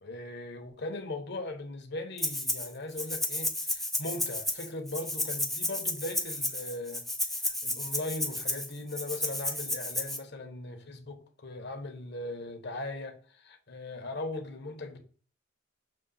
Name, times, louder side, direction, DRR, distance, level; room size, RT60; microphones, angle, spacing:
voice 1, 0.0-15.0, left 2 dB, 60° left, 1.2 m, -39 dB
Rattle (instrument), 2.2-2.7 3.0-10.2, left 1 dB, ahead, 0.8 m, -32 dB
6.5 x 3.2 x 5.7 m
head